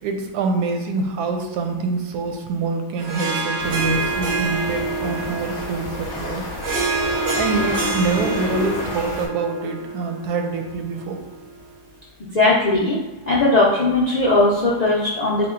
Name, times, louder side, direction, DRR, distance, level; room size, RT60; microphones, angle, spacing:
voice 1, 0.0-6.4 7.4-11.2, right 3 dB, 90° right, 4 dB, 1.1 m, -25 dB
Harp, 3.0-11.6, right 3 dB, 60° right, 0.7 m, -27 dB
sound 1, 3.6-9.3, left 1 dB, 40° left, 0.8 m, -32 dB
voice 2, 12.3-13.0 13.3-15.5, left 2 dB, 65° left, -7 dB, 0.4 m, -18 dB
3.5 x 2.3 x 3.7 m, 1.1 s
omnidirectional pair, 1.6 m